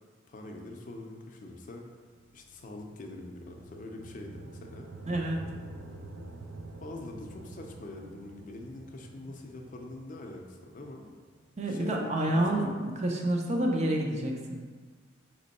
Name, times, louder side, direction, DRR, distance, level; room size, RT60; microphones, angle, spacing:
voice 1, 0.3-1.8 2.3-4.9 6.8-11.1 11.7-12.7, left 2 dB, 45° left, 2 dB, 0.5 m, -44 dB
sound 1, 2.0-12.3, right 2 dB, 85° right, 0.4 m, -48 dB
voice 2, 5.1-5.4 11.6-14.7, right 1 dB, 35° right, 0 dB, 0.5 m, -28 dB
4.3 x 3.0 x 4.1 m, 1.5 s
head